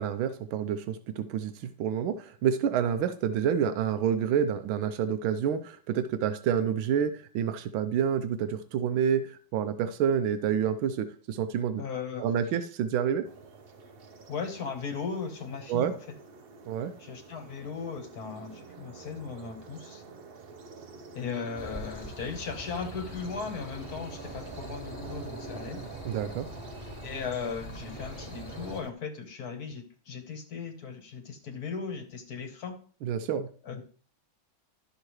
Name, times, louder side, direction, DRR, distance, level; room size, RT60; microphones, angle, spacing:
voice 1, 0.0-11.8 12.2-13.3 15.7-15.9 16.7-16.9 26.0-26.5 33.0-33.5, right 8 dB, 90° right, 10 dB, 1.5 m, -28 dB
voice 2, 11.8-12.3 14.3-16.0 17.0-20.0 21.1-25.8 27.0-32.7 33.6-33.8, left 5 dB, 55° left, 6 dB, 1.5 m, -37 dB
sound 1, 13.2-28.9, right 4 dB, 55° right, 0.6 m, -46 dB
sound 2, 21.6-28.8, left 1 dB, 20° left, 1.5 m, -44 dB
11.5 x 6.6 x 3.1 m, 0.43 s
omnidirectional pair, 2.2 m